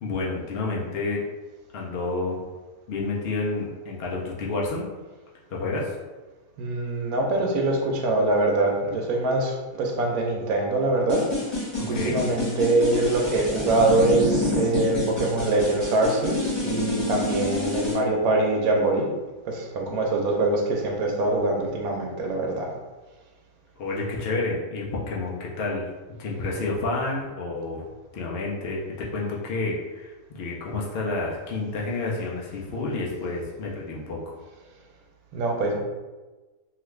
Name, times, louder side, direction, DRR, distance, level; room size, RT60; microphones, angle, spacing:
voice 1, 0.0-1.2 1.7-2.4 2.9-4.9 5.5-6.0 11.9-12.2 23.8-25.9 26.2-27.9 28.1-34.4, left 3 dB, 70° left, -3 dB, 0.5 m, -29 dB
voice 2, 6.6-19.1 19.5-22.7 35.3-35.8, right 2 dB, 75° right, 0 dB, 1.1 m, -24 dB
sound 1, 11.1-17.9, left 2 dB, 25° left, 1.0 m, -28 dB
2.8 x 2.4 x 3.1 m, 1.2 s
omnidirectional pair, 1.6 m